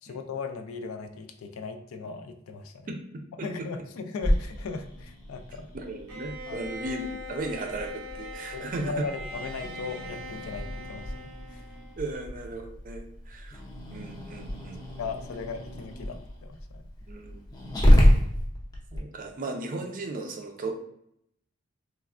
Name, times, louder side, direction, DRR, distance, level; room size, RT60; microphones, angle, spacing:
voice 1, 0.0-2.9 3.4-5.7 6.5-6.6 8.5-11.6 15.0-16.8, left 4 dB, 75° left, 6 dB, 0.4 m, -38 dB
voice 2, 2.9-3.7 5.7-9.0 12.0-13.6 13.9-14.8 17.1-17.4 18.1-18.2 18.9-20.7, right 2 dB, 40° right, 4 dB, 0.4 m, -36 dB
Growling, 4.2-19.0, equal, 20° left, 0.5 m, -29 dB
Bowed string instrument, 6.1-12.1, equal, 85° right, 0.6 m, -42 dB
3.2 x 2.1 x 2.4 m, 0.73 s
head